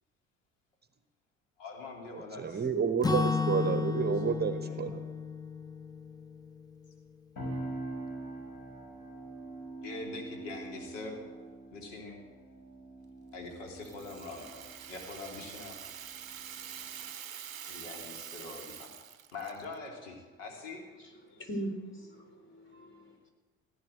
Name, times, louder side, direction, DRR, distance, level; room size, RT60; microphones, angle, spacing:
voice 1, 1.6-2.7 4.2-5.0 9.8-11.2 11.7-12.2 13.3-15.8 17.7-18.9 19.3-20.8, left 3 dB, 70° left, 1 dB, 3.1 m, -44 dB
voice 2, 2.1-5.0, right 7 dB, 25° right, 11 dB, 1.0 m, -30 dB
Acoustic guitar / Strum, 3.0-7.0, left 5 dB, 10° left, 0.7 m, -33 dB
sound 1, 7.4-17.1, right 2 dB, 45° left, 6.3 m, -44 dB
Rattle (instrument), 13.8-19.8, right 9 dB, 85° right, 0.6 m, -45 dB
voice 3, 21.0-23.3, right 1 dB, 30° left, 4 dB, 4.1 m, -41 dB
16.5 x 10.5 x 7.9 m, 1.3 s
figure-of-eight pair, 55°, 39 cm